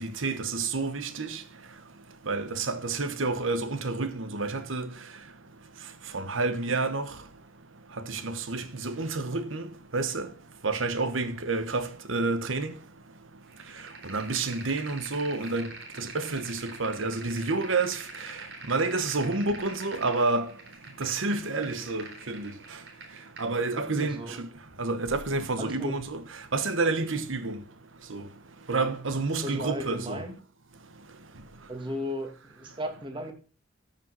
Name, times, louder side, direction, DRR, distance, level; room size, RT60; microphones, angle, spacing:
voice 1, 0.0-1.4 2.3-4.9 6.1-7.1 8.1-9.6 9.9-10.3 10.6-12.7 14.0-15.7 16.0-18.4 18.7-20.5 21.0-22.5 23.4-24.5 24.8-26.2 26.5-27.6 28.1-28.2 28.7-30.2, right 3 dB, 80° right, 1.2 m, -29 dB
sound 1, 13.5-23.5, right 3 dB, 55° right, 2.9 m, -45 dB
voice 2, 25.6-26.0 29.4-30.3 31.7-33.3, equal, 25° right, 1.9 m, -35 dB
13.5 x 5.4 x 5.5 m
head